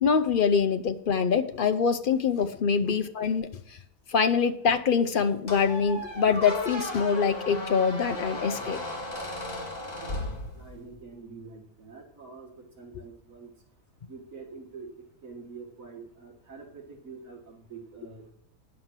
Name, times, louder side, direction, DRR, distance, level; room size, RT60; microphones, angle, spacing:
voice 1, 0.0-3.8 4.1-8.8, left 6 dB, 55° left, 9 dB, 0.6 m, -25 dB
Squeak, 5.5-11.0, left 1 dB, 25° left, 2.3 m, -35 dB
voice 2, 10.0-13.5 14.1-14.9 15.2-18.3, right 4 dB, 60° right, 1 dB, 2.0 m, -46 dB
9.5 x 6.4 x 7.2 m, 0.76 s
omnidirectional pair, 1.6 m